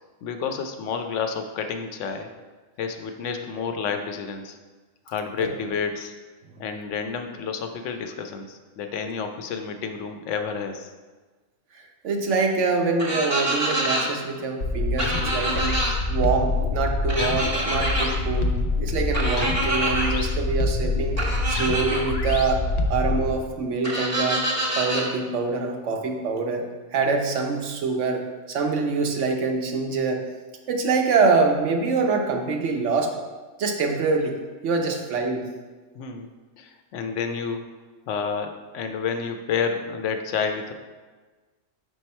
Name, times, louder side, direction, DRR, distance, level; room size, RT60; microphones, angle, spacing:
voice 1, 0.2-2.3 2.8-4.6 5.1-6.1 6.6-10.9 34.8-35.0 35.9-36.3 36.6-37.6 38.1-40.7, left 6 dB, 85° left, 6 dB, 1.0 m, -30 dB
voice 2, 12.0-15.8 16.1-18.5 18.8-21.2 21.5-22.6 22.9-24.4 24.8-26.6 26.9-28.2 28.5-30.2 30.7-33.1 33.6-34.4 34.6-35.5, right 4 dB, 75° right, 3 dB, 1.1 m, -25 dB
sound 1, 13.0-14.0 15.0-15.9 17.1-18.1 19.1-20.1 21.2-22.0 23.8-25.0, right 1 dB, 15° right, 1.1 m, -26 dB
sound 2, 14.6-23.3, left 3 dB, 55° left, 0.4 m, -26 dB
5.4 x 4.7 x 4.2 m, 1.3 s
omnidirectional pair, 1.2 m